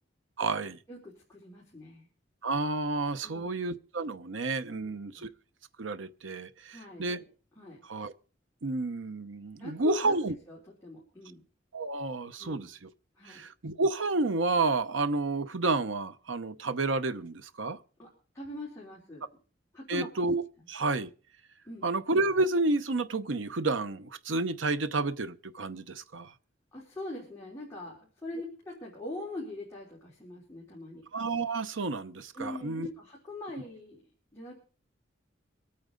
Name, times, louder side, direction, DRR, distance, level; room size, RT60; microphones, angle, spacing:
voice 1, 0.4-0.8 2.4-5.3 5.8-7.2 7.9-8.1 8.6-10.3 11.7-12.9 13.3-17.8 19.9-20.4 20.7-21.1 21.8-26.3 31.1-32.9, right 3 dB, 90° right, 0.8 m, -30 dB
voice 2, 0.9-2.1 3.2-3.6 4.7-5.2 6.7-7.2 7.6-7.8 9.6-11.4 12.4-12.7 13.2-13.4 18.0-18.1 18.3-19.2 19.7-20.1 21.6-21.9 26.7-31.0 32.3-34.0 34.3-34.5, left 2 dB, 15° left, 3.5 m, -42 dB
24.5 x 8.7 x 3.9 m
head